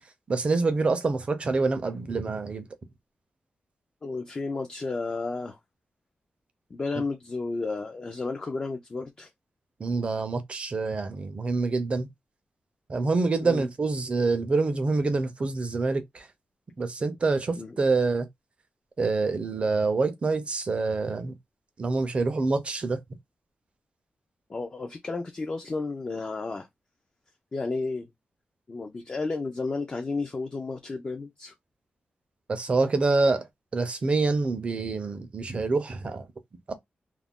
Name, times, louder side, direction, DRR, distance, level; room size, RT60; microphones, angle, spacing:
voice 1, 0.3-2.7 9.8-12.1 12.9-16.3 16.8-18.3 19.0-21.4 21.8-23.0 32.5-33.5 33.7-36.3 36.7-36.8, right 3 dB, 35° right, 0.5 m, -26 dB
voice 2, 4.0-5.6 6.7-9.3 13.4-13.7 17.6-17.8 24.5-26.7 27.5-28.1 28.7-31.5, left 3 dB, 30° left, 0.3 m, -32 dB
2.4 x 2.1 x 3.5 m
wide cardioid pair, 175°, 3 cm